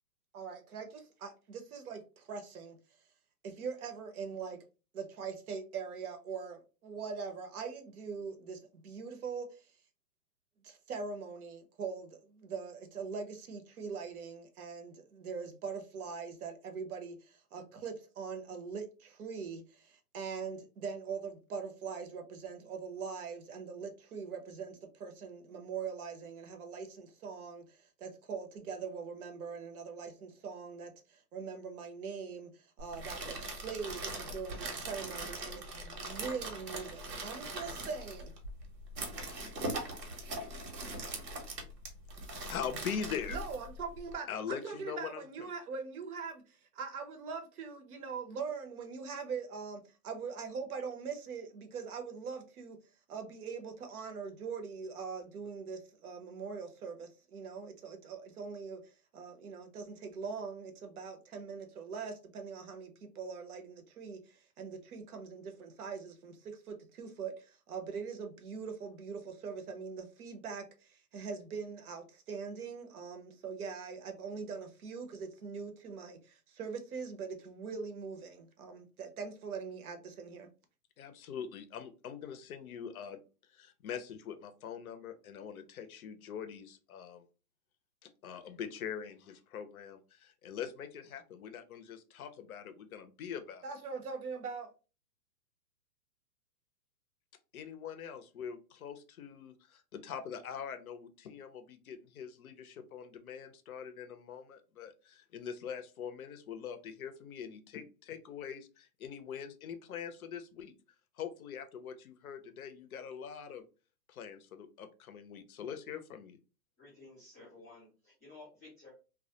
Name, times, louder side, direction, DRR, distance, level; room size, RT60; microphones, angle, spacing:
voice 1, 0.3-2.8 3.4-4.6 4.9-9.7 10.6-38.3 43.3-52.8 53.1-80.5 93.6-94.7, right 5 dB, 65° right, 0.7 m, -42 dB
sound 1, 32.8-44.1, right 2 dB, 90° right, 1.1 m, -41 dB
voice 2, 42.5-43.4 44.3-45.5 81.0-83.2 83.5-87.2 88.0-93.6 97.5-110.7 111.2-113.6 114.1-116.4, left 7 dB, 60° left, 0.5 m, -43 dB
voice 3, 116.8-118.9, left 3 dB, 10° left, 0.4 m, -54 dB
2.2 x 2.1 x 2.7 m
hypercardioid pair, 155°, 48 cm